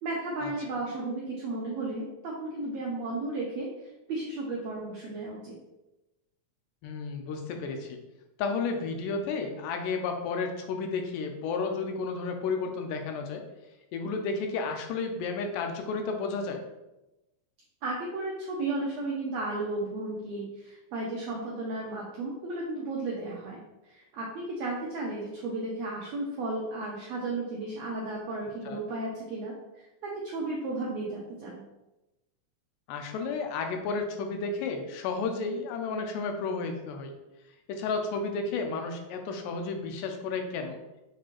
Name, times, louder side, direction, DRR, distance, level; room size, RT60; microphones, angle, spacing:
voice 1, 0.0-3.7 4.1-5.5 17.8-31.6, right 2 dB, 85° right, -3 dB, 1.5 m, -34 dB
voice 2, 6.8-8.0 8.4-13.4 13.9-16.6 28.7-28.8 32.9-37.1 37.7-40.8, left 4 dB, 90° left, 4 dB, 2.2 m, -32 dB
6.4 x 2.4 x 3.0 m, 0.99 s
omnidirectional pair, 3.7 m